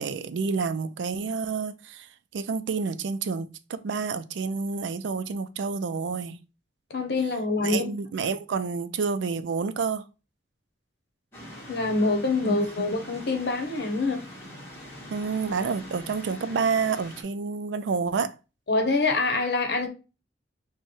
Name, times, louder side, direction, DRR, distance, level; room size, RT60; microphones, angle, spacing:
voice 1, 0.0-2.1 2.3-6.4 7.6-10.1 12.5-13.0 15.1-18.3, right 5 dB, 90° right, 0.4 m, -29 dB
voice 2, 6.9-7.9 11.7-14.2 18.7-19.9, left 3 dB, 65° left, 0.9 m, -25 dB
sound 1, 11.3-17.2, equal, 15° left, 1.4 m, -43 dB
6.2 x 2.2 x 3.1 m
head